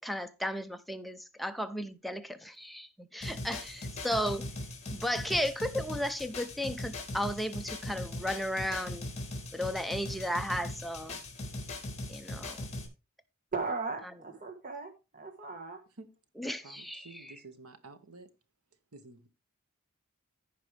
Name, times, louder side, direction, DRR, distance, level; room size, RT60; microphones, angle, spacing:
voice 1, 0.0-4.5 4.9-9.1 9.5-11.2 12.1-12.7 16.3-17.4, equal, ahead, 0.6 m, -34 dB
sound 1, 3.2-12.9, left 1 dB, 30° left, 2.6 m, -40 dB
voice 2, 13.5-15.8, right 4 dB, 40° right, 1.4 m, -37 dB
voice 3, 16.6-18.3 18.9-19.3, right 3 dB, 80° right, 1.4 m, -51 dB
15.0 x 5.2 x 3.3 m
head